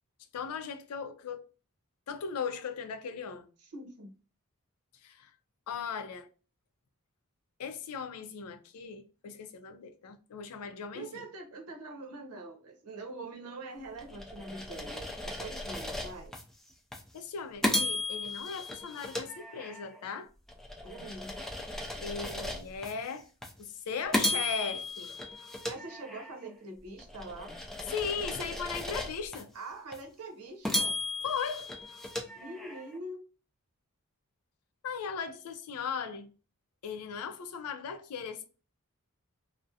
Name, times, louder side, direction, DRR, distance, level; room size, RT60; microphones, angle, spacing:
voice 1, 0.3-1.4 2.1-3.5 5.0-5.3 5.7-6.3 7.6-11.2 17.1-20.3 22.0-23.3 23.6-25.1 27.8-29.5 31.2-31.7 34.8-36.3 36.8-38.4, left 6 dB, 80° left, 0.4 m, -38 dB
voice 2, 3.6-4.1 10.9-16.4 20.8-21.4 25.7-27.6 29.5-31.0 32.3-33.2, right 2 dB, 80° right, 0.6 m, -44 dB
sound 1, 14.0-16.4 16.9-17.1 17.6-20.0 20.5-22.9 23.4-23.6 24.1-26.5 27.0-29.4 29.9-30.0 30.6-33.0, left 1 dB, ahead, 0.3 m, -35 dB
2.3 x 2.0 x 2.6 m
head